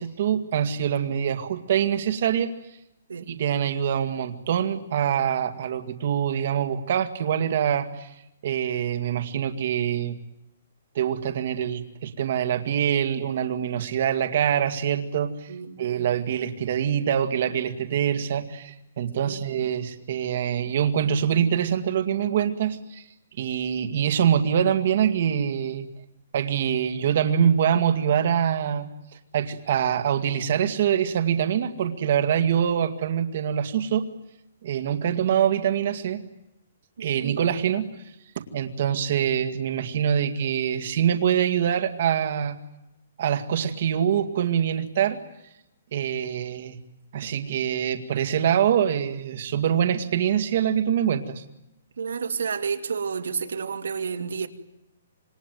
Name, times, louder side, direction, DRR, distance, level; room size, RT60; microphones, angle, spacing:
voice 1, 0.0-2.5 3.3-8.1 8.4-10.2 11.0-15.5 15.8-23.0 23.4-25.9 26.3-34.1 34.6-36.2 37.0-37.9 38.5-42.6 43.2-45.2 45.9-46.8 47.1-51.4, right 9 dB, 40° right, 2.0 m, -24 dB
voice 2, 15.5-16.1 19.2-19.4 37.0-37.4 52.0-54.5, right 6 dB, 85° right, 2.6 m, -31 dB
27.0 x 23.0 x 9.4 m
hypercardioid pair, 180°, 0 cm